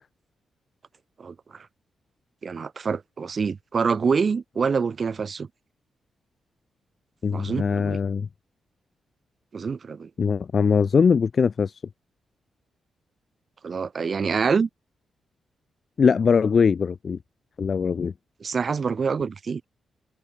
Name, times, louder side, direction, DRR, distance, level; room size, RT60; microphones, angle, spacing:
voice 1, 2.4-5.5 7.3-8.0 9.5-10.1 13.6-14.7 18.4-19.6, right 5 dB, 40° right, 6.9 m, -26 dB
voice 2, 7.2-8.3 10.2-11.8 16.0-17.2 17.6-18.1, left 6 dB, 40° left, 2.1 m, -21 dB
wide cardioid pair, 140°, 0 cm